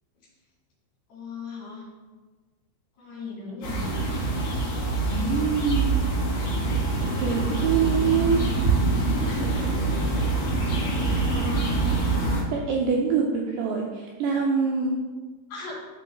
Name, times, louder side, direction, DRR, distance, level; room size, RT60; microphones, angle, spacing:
voice 1, 1.1-1.9 3.0-3.9 7.9-8.3 9.2-9.7 9.9-10.4 10.9-11.7 15.5-15.8, left 3 dB, 65° left, -5 dB, 4.2 m, -39 dB
sound 1, 3.6-12.4, right 3 dB, 45° left, 3.0 m, -25 dB
voice 2, 5.1-6.1 7.2-8.5 12.5-15.0, right 5 dB, 85° right, -1 dB, 2.4 m, -25 dB
13.5 x 4.7 x 2.3 m, 1.4 s
omnidirectional pair, 5.4 m